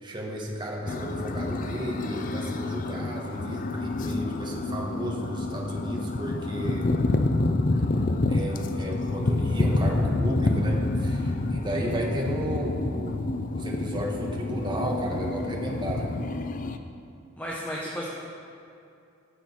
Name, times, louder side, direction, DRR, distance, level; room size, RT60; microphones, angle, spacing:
voice 1, 0.0-6.9 8.3-13.2 13.5-16.1, equal, 20° right, -2 dB, 1.5 m, -33 dB
sound 1, 0.8-16.8, left 2 dB, 40° left, 0.5 m, -28 dB
voice 2, 17.4-18.1, equal, 10° left, -4 dB, 1.1 m, -33 dB
16.5 x 6.5 x 4.5 m, 2.5 s
head